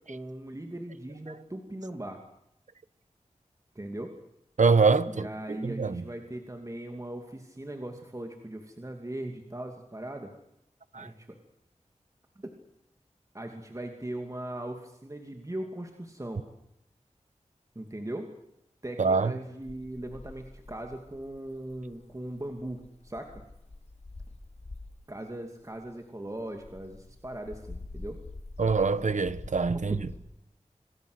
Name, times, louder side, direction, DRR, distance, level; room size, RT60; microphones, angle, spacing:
voice 1, 0.0-2.2 3.7-4.1 5.1-10.3 10.9-11.4 12.4-12.5 13.3-16.4 17.7-18.3 18.8-23.4 25.1-28.2 29.7-29.8, right 1 dB, 25° right, 2.6 m, -39 dB
voice 2, 4.6-6.0 10.9-11.1 19.0-19.3 28.6-30.0, right 4 dB, 80° right, 1.2 m, -24 dB
sound 1, 19.6-25.1 25.6-30.2, left 2 dB, 60° left, 3.2 m, -46 dB
27.5 x 20.0 x 8.1 m
wide cardioid pair, 75°, 12 cm